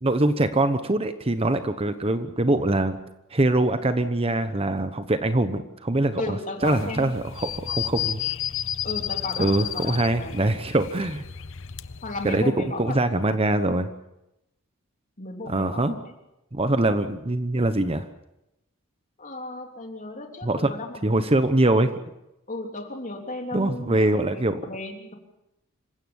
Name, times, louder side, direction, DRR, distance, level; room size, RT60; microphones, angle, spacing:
voice 1, 0.0-3.0 3.3-6.4 6.6-8.2 9.4-11.2 12.2-12.4 12.8-13.9 15.5-15.9 16.5-18.1 20.4-20.7 21.0-21.9 23.5-24.6, right 2 dB, 25° right, 10 dB, 1.0 m, -23 dB
voice 2, 6.2-7.1 8.8-10.4 12.0-13.0 15.2-16.1 19.2-21.1 22.5-25.1, left 2 dB, 40° left, 3 dB, 3.3 m, -35 dB
sound 1, 6.6-12.4, left 10 dB, 65° left, 0.8 m, -32 dB
26.5 x 16.0 x 7.2 m, 0.88 s
head